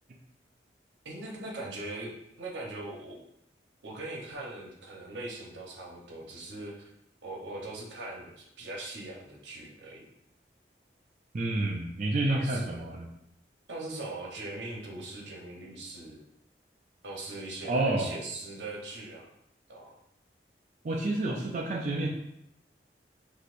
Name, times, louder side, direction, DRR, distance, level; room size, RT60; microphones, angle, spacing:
voice 1, 1.0-3.2 3.8-6.9 7.2-10.1 12.3-12.9 13.7-16.2 17.0-19.3 19.7-20.0, right 2 dB, 85° right, -1 dB, 0.9 m, -40 dB
voice 2, 11.3-13.1 17.7-18.1 20.8-22.1, right 2 dB, 40° right, -1 dB, 0.4 m, -29 dB
6.2 x 2.7 x 2.5 m, 0.80 s
head